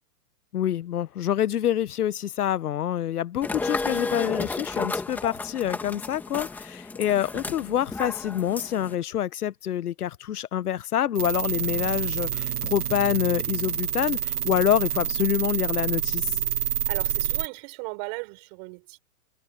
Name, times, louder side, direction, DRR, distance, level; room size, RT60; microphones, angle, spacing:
voice 1, 0.5-16.3, left 11 dB, 75° left, 1.0 m, -26 dB
sound 1, 3.4-9.0, left 3 dB, 5° left, 1.9 m, -32 dB
sound 2, 11.2-17.5, right 10 dB, 75° right, 2.1 m, -28 dB
voice 2, 16.9-19.0, right 32 dB, 30° right, 6.5 m, -37 dB
hypercardioid pair, 165°, 46 cm